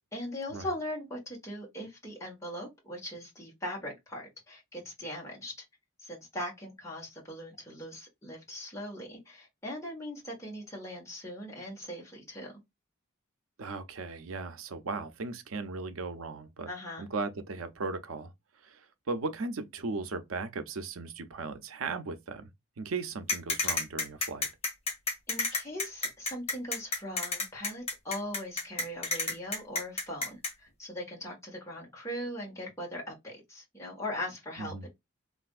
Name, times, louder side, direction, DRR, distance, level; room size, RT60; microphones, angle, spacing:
voice 1, 0.0-5.5 6.0-12.5 16.7-17.1 25.3-34.9, left 1 dB, 15° left, 1.3 m, -40 dB
voice 2, 13.6-16.7 17.0-18.3 18.6-22.5 22.8-24.5 34.6-34.9, right 3 dB, 85° right, 0.5 m, -37 dB
sound 1, 23.3-30.5, left 3 dB, 30° left, 1.1 m, -30 dB
3.3 x 2.5 x 2.4 m
head